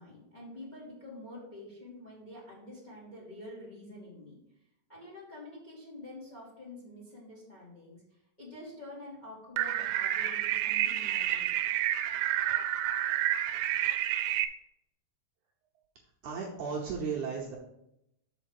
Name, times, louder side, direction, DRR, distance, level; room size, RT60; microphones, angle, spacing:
voice 1, 0.0-4.3 4.9-8.0 8.4-11.6, left 1 dB, 15° left, -4 dB, 2.0 m, -47 dB
sound 1, 9.6-14.4, right 12 dB, 85° right, 2.3 m, -29 dB
voice 2, 16.2-17.6, right 5 dB, 70° right, -2 dB, 2.1 m, -35 dB
6.2 x 5.0 x 6.5 m, 0.81 s
omnidirectional pair, 4.1 m